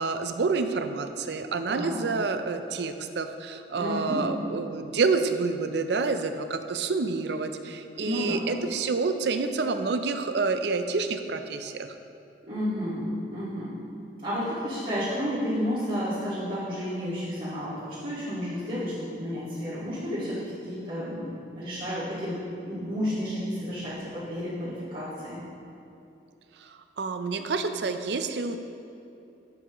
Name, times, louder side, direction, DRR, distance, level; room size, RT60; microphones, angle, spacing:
voice 1, 0.0-11.9 26.6-28.6, right 4 dB, 65° right, 8 dB, 0.5 m, -28 dB
voice 2, 1.7-2.0 3.7-4.3 7.9-8.4 12.4-13.8 14.2-22.4 22.6-25.4, equal, 50° right, -13 dB, 2.0 m, -31 dB
12.0 x 7.0 x 3.0 m, 2.7 s
head